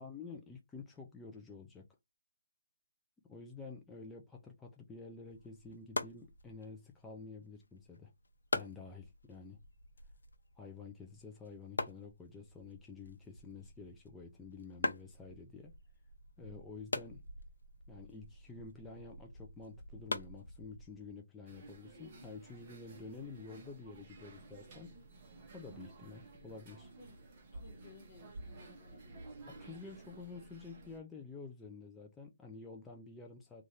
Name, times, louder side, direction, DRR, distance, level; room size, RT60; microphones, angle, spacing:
voice 1, 0.0-1.9 3.3-8.1 8.5-9.6 10.6-15.7 16.4-17.2 17.9-25.0 25.5-26.9 29.5-33.7, left 4 dB, 5° left, 0.3 m, -50 dB
sound 1, 5.3-21.1, left 2 dB, 75° left, 0.6 m, -44 dB
sound 2, 21.5-31.0, right 2 dB, 25° right, 0.8 m, -53 dB
voice 2, 27.0-29.3, left 5 dB, 35° left, 1.3 m, -60 dB
2.6 x 2.4 x 3.1 m
hypercardioid pair, 165°, 0 cm